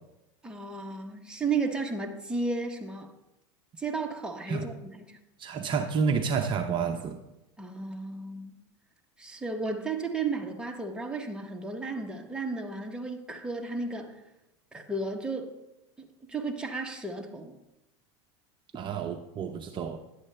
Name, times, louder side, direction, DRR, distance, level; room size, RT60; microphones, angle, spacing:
voice 1, 0.4-3.1 3.8-5.2 7.6-8.6 9.2-14.2 14.7-15.5 16.0-17.5, right 3 dB, 5° right, 2 dB, 1.0 m, -34 dB
voice 2, 5.4-7.2 18.7-20.0, right 5 dB, 35° right, 5 dB, 0.6 m, -29 dB
11.0 x 8.1 x 3.3 m, 0.94 s
supercardioid pair, 120°, 15 cm